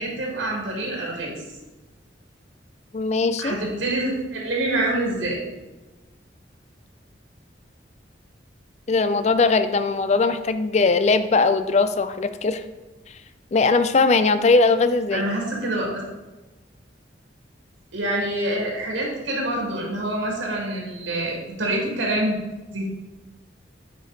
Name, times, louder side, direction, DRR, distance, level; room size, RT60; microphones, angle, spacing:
voice 1, 0.0-1.3 3.4-5.4 15.1-15.9 17.9-22.4 22.7-22.9, right 1 dB, 90° right, -2 dB, 2.0 m, -26 dB
voice 2, 2.9-3.6 8.9-12.6 13.5-15.2, left 3 dB, 35° left, 11 dB, 0.4 m, -20 dB
8.8 x 5.1 x 4.0 m, 1.1 s
head